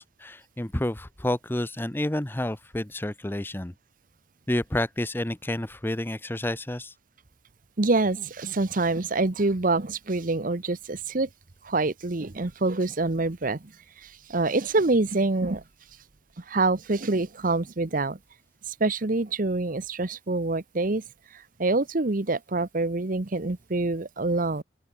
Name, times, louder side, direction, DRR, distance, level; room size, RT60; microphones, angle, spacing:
voice 1, 0.0-3.7 4.5-6.9, left 1 dB, 10° left, 0.7 m, -29 dB
voice 2, 7.8-11.3 11.6-13.7 14.0-15.6 16.4-18.2 18.7-21.0 21.3-24.6, right 2 dB, 45° right, 1.0 m, -26 dB
open air
head